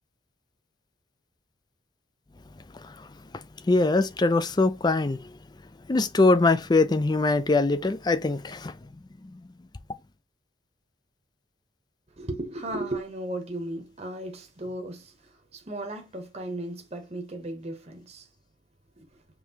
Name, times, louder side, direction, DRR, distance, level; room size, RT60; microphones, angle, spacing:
voice 1, 2.7-3.1 3.3-5.3 5.9-8.8 9.3-9.4, left 3 dB, 20° left, 0.4 m, -23 dB
voice 2, 12.2-18.3 19.0-19.1, right 1 dB, 30° right, 0.9 m, -35 dB
5.3 x 3.2 x 2.8 m
head